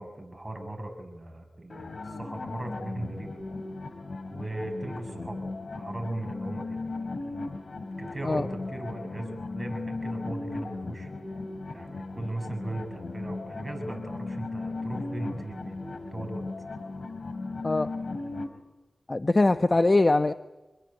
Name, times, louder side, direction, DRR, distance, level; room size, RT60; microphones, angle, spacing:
voice 1, 0.0-3.4 4.3-5.5 5.7-6.8 8.0-11.1 11.7-15.8 16.1-16.4, right 1 dB, 30° right, 4 dB, 6.7 m, -37 dB
sound 1, 1.7-18.5, left 3 dB, 75° left, 3.3 m, -37 dB
voice 2, 19.1-20.3, left 2 dB, 40° left, 9 dB, 1.0 m, -22 dB
27.5 x 21.0 x 9.9 m, 1.1 s
cardioid pair, 50°, 0 cm